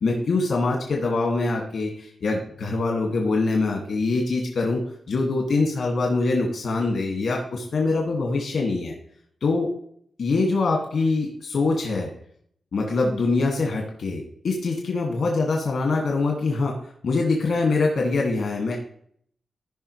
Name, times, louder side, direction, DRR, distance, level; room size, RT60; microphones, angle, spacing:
voice 1, 0.0-4.8 5.1-8.9 9.4-9.7 10.2-12.1 12.7-16.8 17.0-18.8, left 3 dB, 80° left, -1 dB, 2.0 m, -24 dB
15.0 x 5.6 x 3.2 m, 0.63 s
wide cardioid pair, 120°, 0 cm